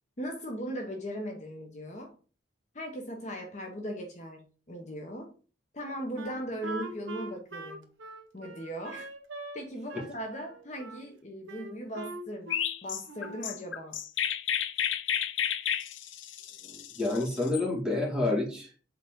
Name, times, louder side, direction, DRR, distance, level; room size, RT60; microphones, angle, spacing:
voice 1, 0.2-2.1 2.7-5.3 5.7-7.9 8.3-9.1 9.5-14.0, equal, 35° left, 2 dB, 0.9 m, -38 dB
Wind instrument woodwind instrument, 6.2-9.6 9.9-11.0 11.5-12.8 13.1-13.5, right 2 dB, 85° right, 1.1 m, -42 dB
Chirp tweet, 12.5-17.6, left 9 dB, 85° left, 0.5 m, -32 dB
voice 2, 16.6-18.9, left 2 dB, 5° right, -2 dB, 1.8 m, -29 dB
6.8 x 4.0 x 3.6 m, 0.38 s
head